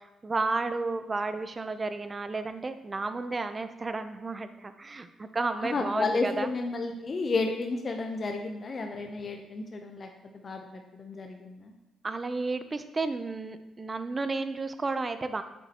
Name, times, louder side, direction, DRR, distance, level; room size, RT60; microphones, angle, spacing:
voice 1, 0.0-6.5 12.0-15.4, right 3 dB, 25° right, 10 dB, 0.6 m, -32 dB
voice 2, 5.6-10.1 10.3-11.7, left 3 dB, 40° left, 3 dB, 0.7 m, -32 dB
8.8 x 7.1 x 3.0 m, 1.0 s
cardioid pair, 90°, 0 cm